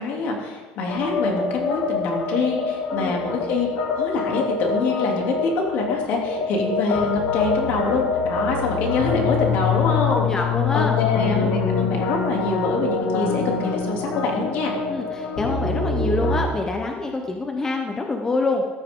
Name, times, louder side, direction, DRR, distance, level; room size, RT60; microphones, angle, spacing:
voice 1, 0.0-3.7 3.9-10.3 10.7-14.7, left 3 dB, 65° left, 0 dB, 3.0 m, -25 dB
sound 1, 0.9-16.4, left 5 dB, 90° left, 2.4 m, -25 dB
voice 2, 10.1-11.0 14.9-18.6, left 3 dB, 15° left, 3 dB, 1.0 m, -26 dB
14.5 x 12.5 x 3.8 m, 1.4 s
cardioid pair, 150°, 3 cm